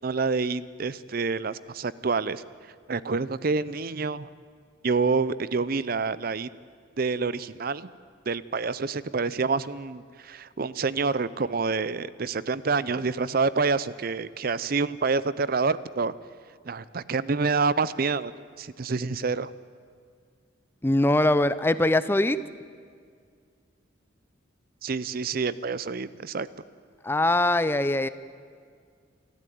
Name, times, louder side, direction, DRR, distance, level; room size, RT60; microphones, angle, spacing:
voice 1, 0.0-2.4 2.9-4.3 4.8-6.5 7.0-7.9 8.3-16.1 16.6-18.3 18.6-19.5 24.8-26.5, right 4 dB, 50° right, 17 dB, 0.6 m, -27 dB
voice 2, 20.8-22.4 27.0-28.1, left 1 dB, 10° left, 14 dB, 0.5 m, -22 dB
28.0 x 13.5 x 9.3 m, 2.1 s
head